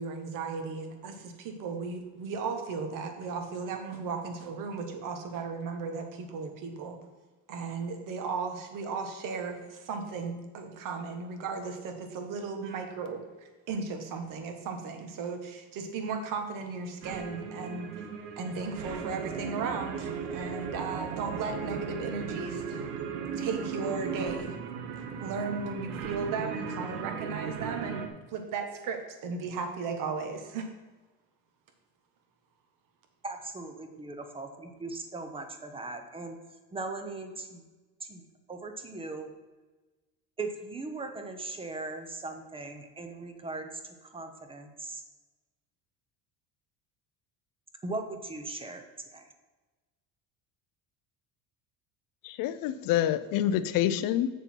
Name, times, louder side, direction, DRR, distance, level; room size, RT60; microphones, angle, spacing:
voice 1, 0.0-7.0 7.5-18.1 18.4-22.8 23.3-24.6 25.0-30.7, right 4 dB, 55° right, 5 dB, 1.4 m, -36 dB
sound 1, 17.0-28.1, right 6 dB, 90° right, 1.2 m, -37 dB
voice 2, 33.2-36.4 36.7-37.6 38.0-39.3 40.4-45.0 47.8-48.8 49.1-49.3, right 3 dB, 15° right, 6 dB, 0.8 m, -39 dB
voice 3, 52.2-54.3, left 11 dB, 60° left, 13 dB, 0.6 m, -27 dB
7.5 x 6.8 x 4.5 m, 1.2 s
cardioid pair, 145°, 39 cm